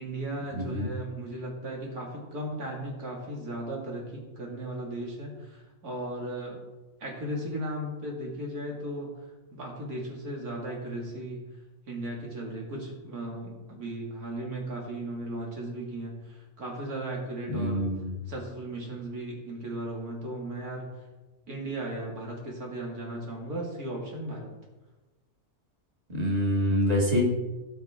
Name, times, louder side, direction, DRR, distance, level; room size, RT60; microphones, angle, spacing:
voice 1, 0.0-6.6 7.0-9.1 9.5-11.4 11.9-17.8 18.3-20.9 21.5-24.5, right 1 dB, 90° right, -1 dB, 2.6 m, -36 dB
voice 2, 0.5-0.9 17.5-18.1 26.1-27.2, equal, 25° right, -3 dB, 2.3 m, -26 dB
17.5 x 5.8 x 3.6 m, 1.1 s
omnidirectional pair, 1.5 m